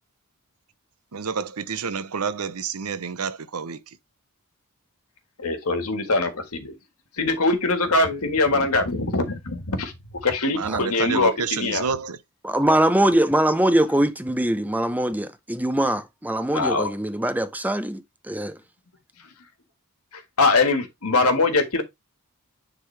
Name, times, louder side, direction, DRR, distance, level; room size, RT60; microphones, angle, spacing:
voice 1, 1.1-4.0 10.5-12.2, right 5 dB, 85° right, 0.8 m, -29 dB
voice 2, 5.4-6.7 7.2-11.8 16.5-16.9 20.1-21.8, left 3 dB, 75° left, 1.7 m, -22 dB
voice 3, 12.4-18.6, right 1 dB, 5° right, 0.8 m, -22 dB
9.8 x 3.8 x 3.3 m
head